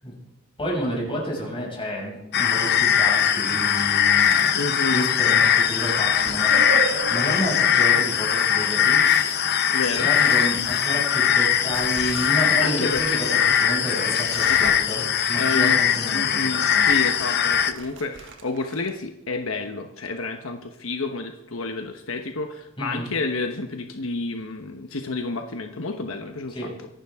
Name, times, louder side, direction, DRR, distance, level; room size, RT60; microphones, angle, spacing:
voice 1, 0.6-9.0 9.9-16.9 22.8-23.1 26.5-26.7, equal, 25° left, -3 dB, 6.6 m, -30 dB
sound 1, 2.3-17.7, left 9 dB, 50° left, 0.8 m, -21 dB
sound 2, 4.0-4.9 5.2-14.9 15.1-15.2 15.5-16.2 16.5-19.0, right 5 dB, 60° right, 1.8 m, -44 dB
voice 2, 4.5-5.1 9.7-10.1 12.6-13.2 14.5-14.7 15.4-15.8 16.1-26.6, left 3 dB, 75° left, 5 dB, 1.1 m, -30 dB
sound 3, 4.8-8.2 8.9-9.6 11.4-11.5, right 5 dB, 75° right, 1.8 m, -34 dB
25.0 x 11.5 x 3.6 m, 0.93 s
head